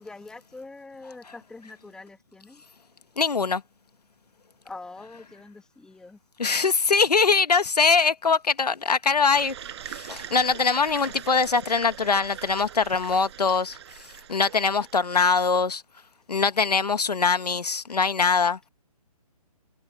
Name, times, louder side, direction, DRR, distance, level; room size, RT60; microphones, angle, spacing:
voice 1, 0.0-2.6 4.6-6.2, left 3 dB, 5° left, 2.1 m, -44 dB
voice 2, 3.2-3.6 6.4-9.5 9.9-13.8 14.3-15.8 16.3-18.6, left 5 dB, 85° left, 1.7 m, -22 dB
sound 1, 9.3-15.4, right 11 dB, 45° right, 6.9 m, -42 dB
hypercardioid pair, 150°, 20 cm